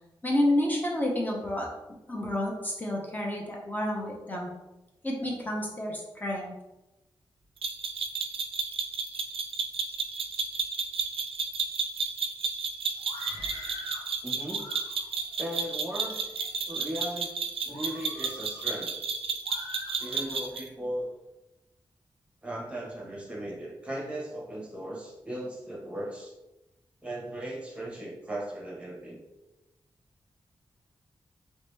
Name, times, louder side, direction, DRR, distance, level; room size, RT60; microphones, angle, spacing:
voice 1, 0.2-1.7 2.1-4.5 5.0-6.5, left 1 dB, 20° left, -2 dB, 0.9 m, -29 dB
sound 1, 7.6-20.7, right 5 dB, 70° right, 0.4 m, -32 dB
Screaming, 13.0-14.1 14.5-15.2 15.9-16.5 17.0-17.2 17.7-18.7 19.4-20.5, left 2 dB, 50° left, 1.1 m, -45 dB
voice 2, 14.2-14.6 15.4-16.2 16.6-17.3 17.6-18.9 20.0-21.1 22.4-26.3 27.0-29.2, right 1 dB, 10° right, -3 dB, 1.3 m, -37 dB
3.1 x 2.8 x 3.4 m, 1.0 s
cardioid pair, 70°, 10 cm